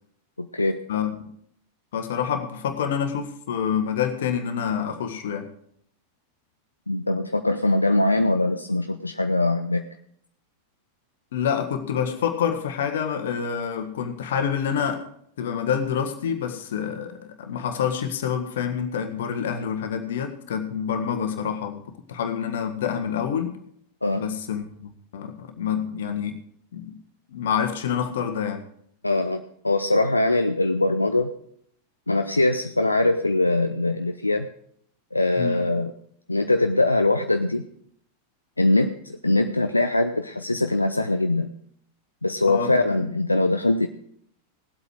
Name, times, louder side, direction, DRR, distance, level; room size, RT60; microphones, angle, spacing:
voice 1, 0.4-0.8 6.9-9.9 24.0-24.2 29.0-31.3 32.1-34.5 35.1-35.9 36.3-37.7 38.6-41.5 42.2-43.9, left 2 dB, 85° left, 6 dB, 0.6 m, -22 dB
voice 2, 0.9-1.3 1.9-5.5 11.3-15.1 15.4-21.8 22.1-23.6 24.1-26.4 26.7-27.0 27.3-28.6 35.4-35.7 42.5-43.1, left 8 dB, 60° left, 7 dB, 1.6 m, -27 dB
18.5 x 8.2 x 4.7 m, 0.68 s
figure-of-eight pair, 90°, 0 cm